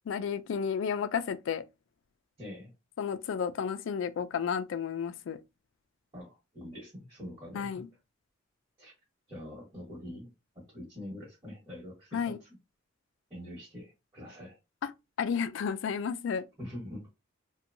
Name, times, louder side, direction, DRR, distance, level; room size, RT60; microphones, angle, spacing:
voice 1, 0.1-1.6 3.0-5.4 7.5-7.9 12.1-12.4 14.8-14.9 15.2-16.4, left 6 dB, 65° left, 0.3 m, -32 dB
voice 2, 2.4-2.7 6.1-7.8 8.8-8.9 9.3-12.5 13.3-14.6 16.6-17.1, left 1 dB, 25° right, 1.2 m, -44 dB
2.8 x 2.2 x 2.6 m
head